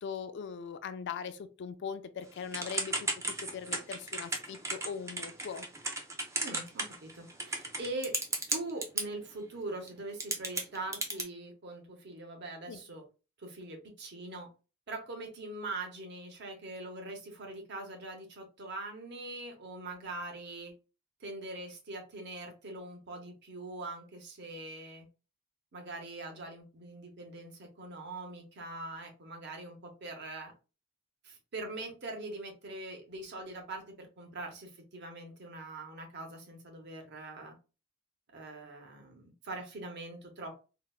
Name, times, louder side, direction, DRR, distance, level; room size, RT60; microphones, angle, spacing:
voice 1, 0.0-5.6 12.7-12.8, left 6 dB, 60° left, 0.4 m, -40 dB
Typing / Telephone, 2.5-9.0 9.9-10.0 10.2-11.2, right 2 dB, 15° right, 0.4 m, -34 dB
voice 2, 6.4-8.1 8.5-13.0 13.4-14.5 14.9-20.7 21.2-25.1 25.7-30.5 31.2-37.5 38.3-40.5, right 2 dB, 55° right, 0.8 m, -42 dB
3.8 x 2.1 x 2.3 m
head